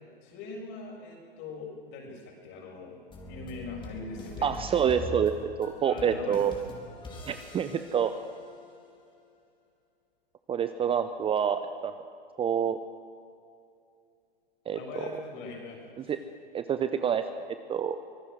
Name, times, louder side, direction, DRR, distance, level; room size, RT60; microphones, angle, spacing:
voice 1, 0.2-3.0 3.3-4.9 5.8-6.4 14.7-16.1, left 3 dB, 45° left, 0 dB, 7.5 m, -42 dB
sound 1, 3.1-8.9, left 2 dB, 15° left, 4.0 m, -43 dB
voice 2, 4.4-5.3 5.6-6.5 7.3-8.1 10.5-11.9 12.4-12.8 14.7-14.8 16.1-16.2 16.5-18.0, right 8 dB, 20° right, 10 dB, 0.8 m, -27 dB
25.0 x 19.5 x 6.5 m, 2.5 s
hypercardioid pair, 105°, 30 cm